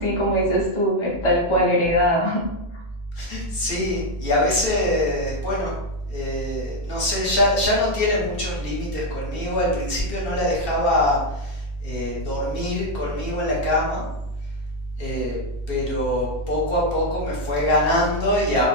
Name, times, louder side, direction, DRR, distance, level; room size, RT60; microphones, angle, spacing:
voice 1, 0.0-2.4, equal, 35° left, -5 dB, 0.5 m, -21 dB
voice 2, 3.2-5.7 6.1-14.1 15.0-15.4 15.7-18.6, left 1 dB, 50° left, -5 dB, 1.0 m, -23 dB
2.5 x 2.0 x 3.1 m, 0.86 s
omnidirectional pair, 1.3 m